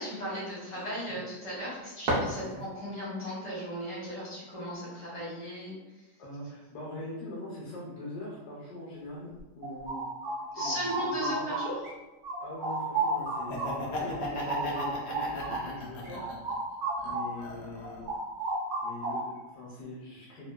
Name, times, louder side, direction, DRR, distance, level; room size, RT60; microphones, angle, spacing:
voice 1, 0.0-5.8 10.5-11.8, equal, 20° right, -9 dB, 0.3 m, -36 dB
voice 2, 0.7-1.2 2.4-2.6 6.2-10.0 10.6-11.5 12.4-16.3 17.0-18.0 18.8-20.5, left 1 dB, 85° left, -5 dB, 1.2 m, -42 dB
sound 1, 1.5-3.0, right 1 dB, 60° right, 0.7 m, -33 dB
sound 2, 9.4-11.9 12.2-17.5 17.8-19.5, right 2 dB, 75° right, 1.0 m, -34 dB
Laughter, 13.4-16.5 17.0-18.1, left 1 dB, 70° left, 0.6 m, -37 dB
2.9 x 2.0 x 2.2 m, 1.1 s
omnidirectional pair, 1.7 m